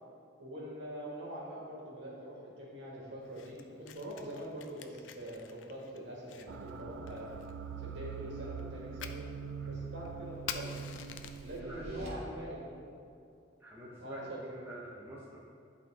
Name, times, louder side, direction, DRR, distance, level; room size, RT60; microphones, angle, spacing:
voice 1, 0.4-7.4 7.8-9.3 9.6-10.7 11.4-13.0 14.0-14.4, right 1 dB, 65° right, -5 dB, 1.9 m, -44 dB
Fire, 3.2-11.6, left 8 dB, 80° left, 0.4 m, -49 dB
sound 1, 6.5-12.1, right 6 dB, 85° right, 0.4 m, -44 dB
sound 2, 10.1-12.1, equal, 35° right, 1.4 m, -54 dB
voice 2, 11.6-12.3 13.6-15.4, right 1 dB, 10° right, -6 dB, 0.9 m, -46 dB
11.0 x 4.2 x 3.5 m, 2.4 s
head